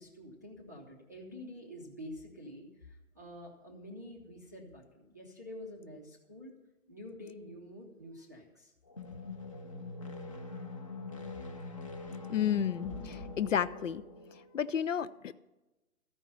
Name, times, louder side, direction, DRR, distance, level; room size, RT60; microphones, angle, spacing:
voice 1, 0.0-6.5 6.9-8.7 14.3-14.7, left 1 dB, 15° right, -3 dB, 0.6 m, -48 dB
sound 1, 8.9-14.5, left 3 dB, 25° left, 0.7 m, -43 dB
voice 2, 12.3-14.0 14.5-15.3, left 9 dB, 60° left, 15 dB, 0.5 m, -31 dB
14.0 x 5.3 x 8.6 m, 1.0 s
hypercardioid pair, 165°, 44 cm